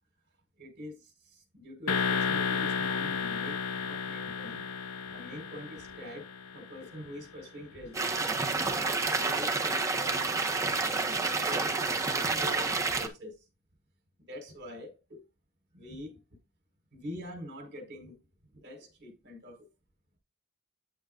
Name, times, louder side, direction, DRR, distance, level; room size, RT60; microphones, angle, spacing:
voice 1, 0.6-4.6 5.1-13.4 14.3-15.2 15.7-16.2 16.9-18.2 18.5-19.7, left 1 dB, 50° right, 5.1 m, -45 dB
sound 1, 1.9-6.8, left 6 dB, 85° left, 0.9 m, -32 dB
sound 2, 7.9-13.1, right 3 dB, 15° right, 1.4 m, -29 dB
9.6 x 9.1 x 2.6 m
head